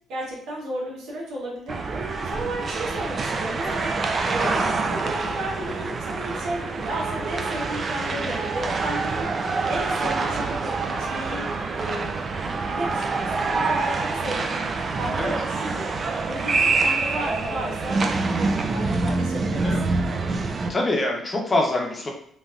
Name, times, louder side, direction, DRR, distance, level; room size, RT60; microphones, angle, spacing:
voice 1, 0.1-3.9 4.2-4.5 4.9-9.3 9.7-10.7 11.0-14.7 14.9-15.9 16.3-18.0 18.3-19.7, right 1 dB, 85° right, -3 dB, 1.1 m, -33 dB
sound 1, 1.7-20.7, right 3 dB, 45° right, 0.3 m, -26 dB
voice 2, 4.4-4.7 8.1-8.2 15.2-15.3 19.6-20.0 20.7-22.1, left 2 dB, 30° left, 1 dB, 0.8 m, -25 dB
3.3 x 2.5 x 2.4 m, 0.66 s
cardioid pair, 90°, 0 cm